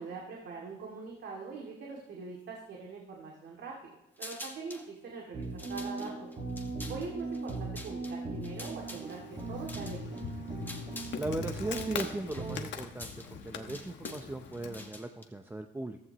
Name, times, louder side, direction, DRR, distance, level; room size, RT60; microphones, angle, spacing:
voice 1, 0.0-3.9 4.2-6.3 6.9-9.2 9.5-10.2, right 4 dB, 70° right, -1 dB, 2.3 m, -42 dB
sound 1, 4.2-4.9 5.4-11.2 11.5-15.2, left 2 dB, 10° left, 1.5 m, -47 dB
sound 2, 5.3-12.6, right 3 dB, 35° right, 1.7 m, -39 dB
Insect, 8.7-14.9, left 7 dB, 70° left, 1.2 m, -43 dB
voice 2, 11.1-16.0, right 2 dB, 10° right, 5 dB, 0.6 m, -38 dB
15.0 x 14.5 x 3.0 m, 0.92 s
cardioid pair, 125°, 19 cm